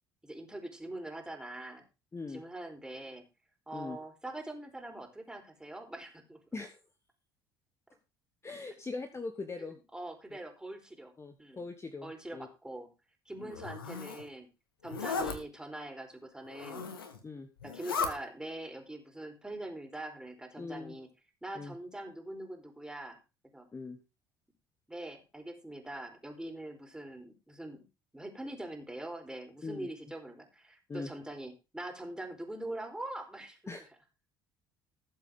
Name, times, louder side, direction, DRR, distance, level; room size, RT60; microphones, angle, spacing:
voice 1, 0.2-1.9 2.3-3.2 3.7-6.4 9.7-11.1 11.4-11.7 12.0-12.9 13.3-14.5 14.8-16.9 17.6-21.1 21.4-23.2 23.5-23.7 24.9-27.9 28.1-33.6, right 1 dB, 5° right, 3 dB, 4.5 m, -43 dB
voice 2, 2.1-2.4 3.7-4.0 6.5-6.7 8.4-9.8 11.2-12.5 13.4-13.6 17.2-17.5 20.6-21.0 21.5-21.7 23.7-24.0 29.6-29.9 30.9-31.1 33.7-33.8, left 3 dB, 25° left, 7 dB, 1.5 m, -41 dB
Zipper (clothing), 13.5-14.2 14.8-15.4 16.5-17.2 17.6-18.1, left 5 dB, 85° left, 1.6 m, -36 dB
19.0 x 7.6 x 3.8 m, 0.30 s
figure-of-eight pair, 60°, 11 cm